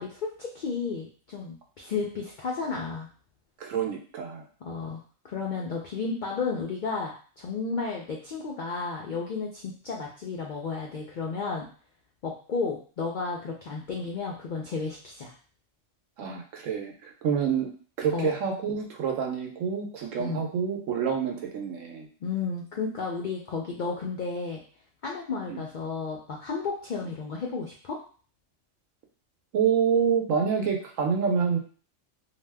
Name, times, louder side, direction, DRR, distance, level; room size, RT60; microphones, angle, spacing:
voice 1, 0.0-3.1 4.6-11.7 12.2-15.3 18.1-18.4 20.2-20.4 22.2-24.6 25.0-28.0, left 4 dB, 70° left, -2 dB, 0.4 m, -33 dB
voice 2, 3.6-4.4 16.2-17.7 18.0-22.1 25.5-25.6 29.5-31.6, right 7 dB, 80° right, 2 dB, 1.0 m, -27 dB
2.7 x 2.1 x 3.3 m, 0.41 s
omnidirectional pair, 1.3 m